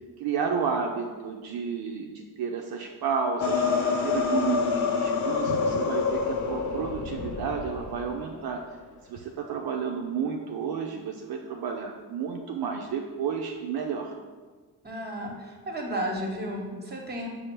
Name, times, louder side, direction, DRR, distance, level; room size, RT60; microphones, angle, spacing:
voice 1, 0.2-3.6 4.0-8.6 9.1-14.1, right 6 dB, 65° right, 1 dB, 0.5 m, -31 dB
sound 1, 3.4-8.2, left 5 dB, 45° left, 0.5 m, -27 dB
voice 2, 14.8-17.3, equal, 25° right, 1 dB, 1.0 m, -33 dB
5.1 x 2.0 x 4.4 m, 1.5 s
supercardioid pair, 60°, 41 cm